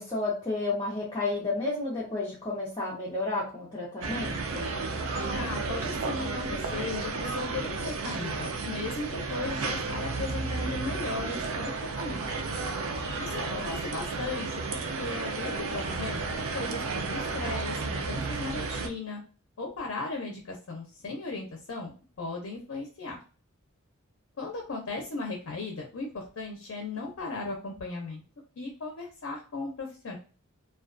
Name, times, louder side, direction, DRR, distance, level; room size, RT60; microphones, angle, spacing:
voice 1, 0.0-4.8 13.4-13.6, left 2 dB, 20° left, -6 dB, 0.7 m, -32 dB
sound 1, 4.0-18.9, right 3 dB, 75° right, 0.4 m, -32 dB
voice 2, 5.3-12.2 13.2-16.2 16.5-19.2 19.6-23.2 24.4-28.2 28.6-30.2, left 3 dB, 70° left, 1 dB, 0.5 m, -37 dB
2.3 x 2.3 x 2.4 m, 0.37 s
head